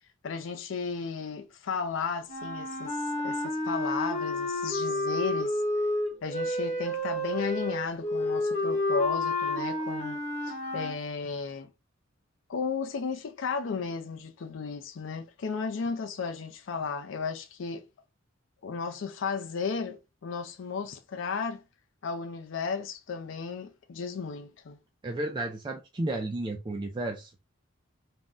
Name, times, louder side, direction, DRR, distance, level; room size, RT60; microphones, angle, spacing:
voice 1, 0.2-3.0 3.2-5.6 6.2-10.2 10.5-11.7 12.5-17.8 18.6-21.6 22.0-24.8, left 5 dB, 70° left, 0.4 m, -34 dB
sound 1, 2.3-11.0, left 1 dB, 35° left, 0.9 m, -30 dB
voice 2, 25.0-27.3, right 2 dB, 25° right, 0.4 m, -32 dB
2.6 x 2.1 x 3.5 m
head